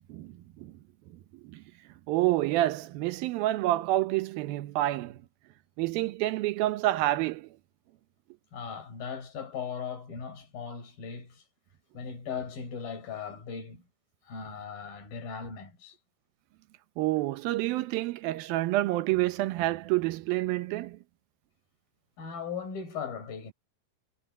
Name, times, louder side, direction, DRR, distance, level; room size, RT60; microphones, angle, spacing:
voice 1, 0.1-0.7 1.4-1.6 2.1-5.2 5.8-7.5 17.0-21.0, right 16 dB, 90° right, 2.7 m, -28 dB
voice 2, 8.5-11.4 11.9-13.8 14.2-16.0 22.2-23.5, left 6 dB, 80° left, 6.8 m, -38 dB
omnidirectional pair, 4.1 m